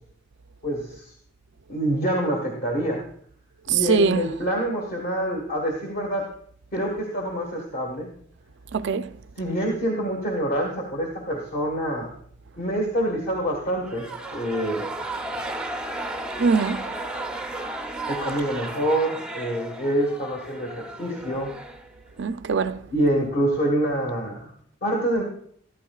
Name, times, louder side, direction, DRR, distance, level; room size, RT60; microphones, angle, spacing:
voice 1, 0.6-1.1 1.7-3.0 3.7-6.3 6.7-8.1 9.4-12.1 12.6-14.1 14.3-14.9 18.1-21.5 22.9-24.5 24.8-25.2, right 1 dB, 45° left, 1.5 m, -26 dB
voice 2, 3.7-4.2 8.7-9.1 16.4-16.9 22.2-22.8, right 5 dB, 60° right, 0.4 m, -22 dB
sound 1, 13.8-22.3, right 2 dB, 5° right, 0.6 m, -34 dB
14.0 x 13.0 x 2.4 m
head